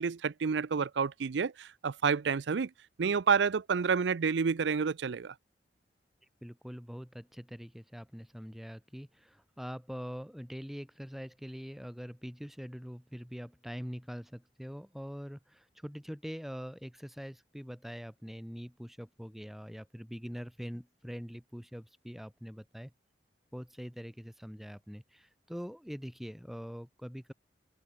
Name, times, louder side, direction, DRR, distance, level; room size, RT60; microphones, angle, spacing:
voice 1, 0.0-2.7 3.0-5.3, right 5 dB, 85° right, 0.5 m, -29 dB
voice 2, 6.4-22.9 23.5-27.3, equal, ahead, 1.3 m, -43 dB
open air
head